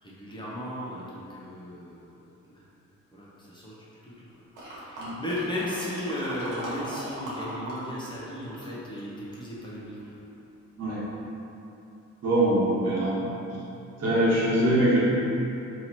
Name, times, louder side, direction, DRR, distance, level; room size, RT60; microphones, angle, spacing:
voice 1, 0.0-2.0 2.4-2.6 3.1-3.7 4.0-4.2 4.8-10.1, left 1 dB, 15° left, -8 dB, 0.7 m, -35 dB
sound 1, 4.5-7.8 8.1-9.5 10.0-10.1, right 1 dB, 85° right, 1.2 m, -38 dB
voice 2, 12.2-13.3 14.0-15.0, right 1 dB, 55° right, -9 dB, 1.4 m, -23 dB
2.9 x 2.8 x 4.3 m, 2.8 s
cardioid pair, 90°, 30 cm